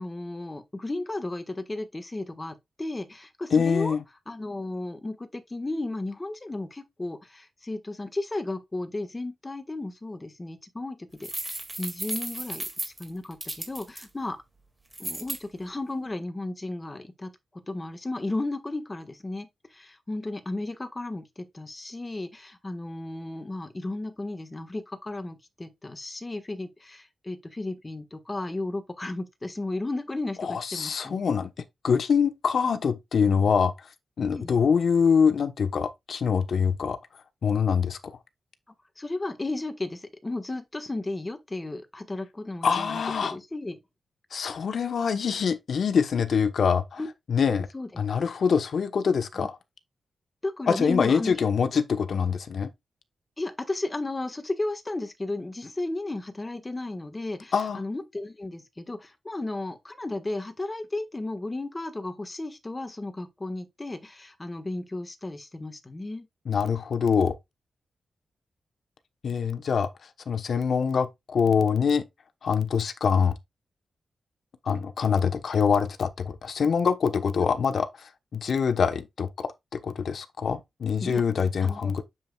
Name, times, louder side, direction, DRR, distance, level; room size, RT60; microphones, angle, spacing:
voice 1, 0.0-4.0 4.3-11.3 11.8-14.4 15.0-31.4 34.3-34.5 39.0-43.8 47.0-47.1 47.5-47.9 49.4-49.5 50.4-51.4 53.4-66.3 81.0-81.2 81.6-81.9, left 2 dB, 20° left, 1.4 m, -34 dB
voice 2, 3.5-4.0 30.4-31.5 31.8-33.7 34.2-37.0 37.4-38.1 42.6-43.4 44.3-47.0 47.3-47.7 48.0-49.6 50.7-52.7 57.5-57.8 66.5-67.3 69.2-69.9 70.3-72.0 72.4-73.3 74.6-82.0, left 6 dB, 60° left, 1.0 m, -24 dB
sound 1, 11.2-14.0 14.9-15.4, right 1 dB, 10° right, 2.1 m, -34 dB
7.5 x 7.3 x 2.3 m
wide cardioid pair, 130°, 0 cm